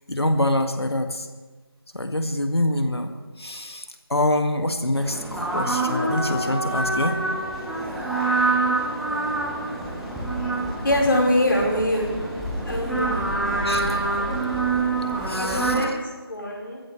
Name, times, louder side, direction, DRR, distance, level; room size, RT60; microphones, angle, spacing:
voice 1, 0.1-1.3 1.9-7.2 13.6-14.0 15.3-15.7, left 1 dB, 85° left, 5 dB, 2.2 m, -25 dB
sound 1, 4.9-15.8, right 2 dB, ahead, 0.5 m, -26 dB
voice 2, 10.8-12.1 12.6-13.2 15.1-16.8, left 1 dB, 55° left, -3 dB, 5.0 m, -24 dB
26.5 x 14.5 x 3.4 m, 1.3 s
figure-of-eight pair, 175°, 13 cm